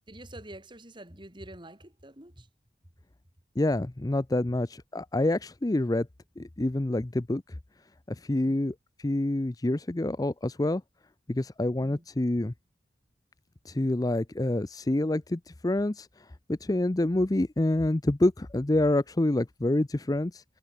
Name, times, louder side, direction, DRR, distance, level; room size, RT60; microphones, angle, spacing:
voice 1, 0.1-2.5 8.4-8.6 11.8-12.1, right 1 dB, 25° right, 4.7 m, -46 dB
voice 2, 3.6-6.1 6.4-7.4 8.1-10.8 11.3-12.5 13.7-16.1 16.5-20.4, left 1 dB, 20° left, 0.5 m, -27 dB
head